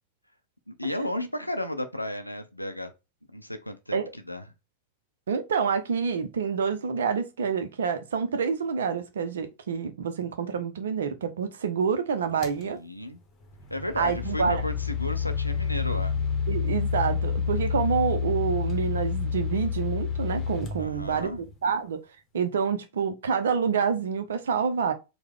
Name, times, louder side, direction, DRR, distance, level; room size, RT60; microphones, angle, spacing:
voice 1, 0.7-2.9 3.3-4.4 12.6-13.2 13.7-16.2 20.8-21.4, left 1 dB, 90° left, 0.4 m, -33 dB
voice 2, 5.3-12.8 14.0-14.6 16.5-21.3 21.6-22.0 22.3-24.9, right 6 dB, 65° right, 0.5 m, -27 dB
sound 1, 12.4-12.6 13.5-21.5, left 6 dB, 25° left, 0.9 m, -29 dB
4.6 x 2.1 x 3.4 m
figure-of-eight pair, 90°, 0 cm